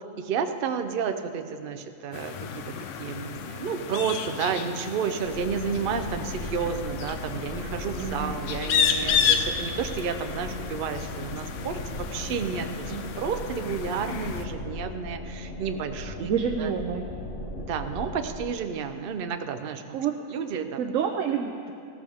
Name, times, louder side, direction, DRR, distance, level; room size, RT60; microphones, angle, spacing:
voice 1, 0.2-16.3 16.6-16.7 17.6-20.0 20.3-20.8, right 6 dB, 50° right, 8 dB, 0.7 m, -31 dB
sound 1, 2.1-14.5, left 7 dB, 70° left, 1.0 m, -31 dB
sound 2, 5.2-18.5, left 2 dB, 50° left, 0.9 m, -38 dB
voice 2, 8.0-8.4 12.9-13.2 16.2-17.1 19.9-20.3 20.8-21.8, right 7 dB, 75° right, 3 dB, 1.0 m, -28 dB
15.0 x 14.0 x 3.5 m, 2.5 s
omnidirectional pair, 1.4 m